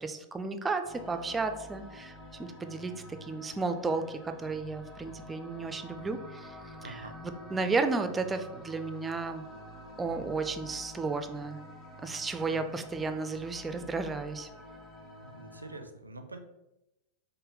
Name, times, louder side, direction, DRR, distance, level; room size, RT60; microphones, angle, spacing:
voice 1, 0.0-2.1 2.4-6.6 6.8-9.6 10.0-11.6 12.0-14.5, right 3 dB, 15° right, 8 dB, 0.4 m, -33 dB
sound 1, 0.8-15.8, left 1 dB, 25° left, 0.8 m, -48 dB
voice 2, 6.8-7.2 12.5-12.7 15.2-16.4, right 2 dB, 80° right, 6 dB, 0.4 m, -45 dB
5.1 x 2.1 x 3.9 m, 0.93 s
figure-of-eight pair, 90°, 0 cm